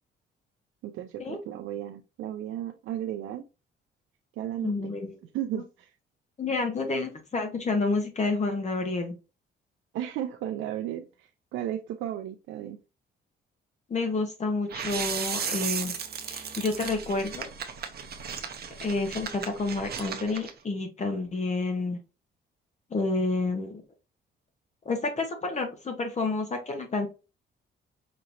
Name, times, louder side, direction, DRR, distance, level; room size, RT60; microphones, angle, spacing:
voice 1, 0.8-3.5 4.4-4.9 5.3-5.9 9.9-12.8, right 11 dB, 85° right, 0.5 m, -34 dB
voice 2, 4.6-5.2 6.4-9.1 13.9-15.9 16.3-17.5 18.8-22.0 22.9-23.8 24.8-27.1, left 3 dB, 35° left, 1.1 m, -29 dB
sound 1, 14.7-20.5, right 7 dB, 50° right, 0.8 m, -35 dB
5.2 x 2.9 x 2.6 m
cardioid pair, 90°, 20 cm